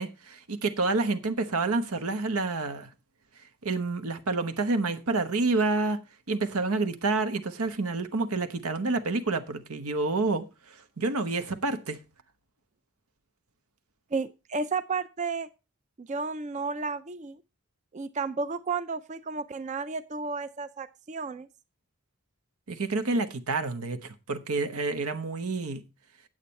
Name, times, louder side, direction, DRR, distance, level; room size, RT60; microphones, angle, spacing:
voice 1, 0.0-2.9 3.6-6.0 6.3-10.5 11.0-12.0 22.7-25.8, right 3 dB, 90° right, 1.0 m, -28 dB
voice 2, 14.1-15.5 16.0-17.4 17.9-21.5, right 4 dB, 35° right, 0.4 m, -32 dB
8.9 x 8.2 x 4.3 m
head